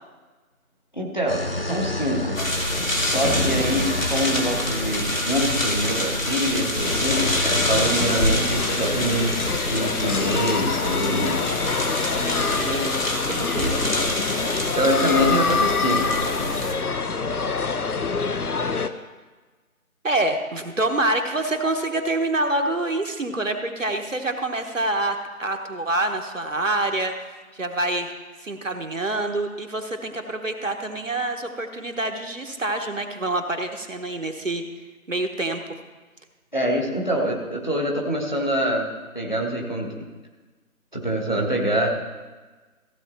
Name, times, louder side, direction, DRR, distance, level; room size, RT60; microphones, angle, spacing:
voice 1, 0.9-2.4 2.9-11.5 14.4-16.0 16.3-16.5 36.5-38.9 39.1-40.1 40.9-41.9, equal, 30° left, -1 dB, 1.2 m, -25 dB
sound 1, 1.3-9.6, left 1 dB, 45° right, 0.5 m, -31 dB
sound 2, 2.4-16.7, left 1 dB, 65° left, 1.9 m, -27 dB
sound 3, 6.8-18.9, left 4 dB, 90° left, 0.8 m, -26 dB
voice 2, 12.2-13.0 13.3-13.8 14.6-14.7 20.0-27.1 27.5-28.1 28.4-34.6 35.1-35.6, right 2 dB, 60° right, 5 dB, 1.1 m, -26 dB
15.0 x 7.1 x 4.2 m, 1.3 s
figure-of-eight pair, 175°, 44 cm